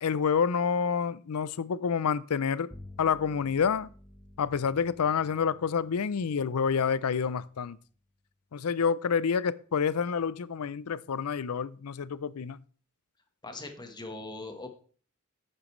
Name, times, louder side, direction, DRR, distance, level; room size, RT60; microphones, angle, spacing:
voice 1, 0.0-2.7 3.0-3.9 4.4-7.8 8.5-12.6, left 6 dB, 90° left, 0.5 m, -28 dB
Bowed string instrument, 2.7-8.3, left 1 dB, ahead, 1.2 m, -53 dB
voice 2, 13.4-14.8, left 2 dB, 20° left, 1.3 m, -41 dB
11.0 x 8.9 x 3.2 m
head